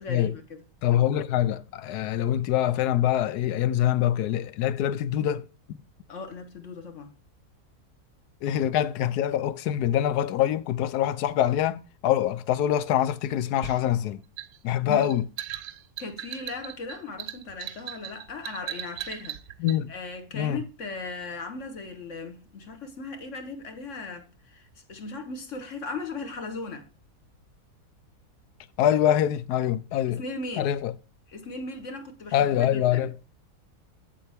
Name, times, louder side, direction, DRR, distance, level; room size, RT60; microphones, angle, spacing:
voice 1, 0.0-0.6 6.1-7.1 14.8-15.1 16.0-19.4 19.9-26.9 30.1-30.7 31.3-33.1, left 3 dB, 55° left, 1.4 m, -37 dB
voice 2, 0.8-5.8 8.4-14.2 14.6-15.3 19.6-19.9 20.3-20.6 28.8-30.2 30.6-30.9 32.3-33.1, left 11 dB, 90° left, 1.1 m, -25 dB
sound 1, 13.6-19.8, right 12 dB, 90° right, 1.2 m, -38 dB
8.0 x 7.4 x 3.4 m
omnidirectional pair, 1.7 m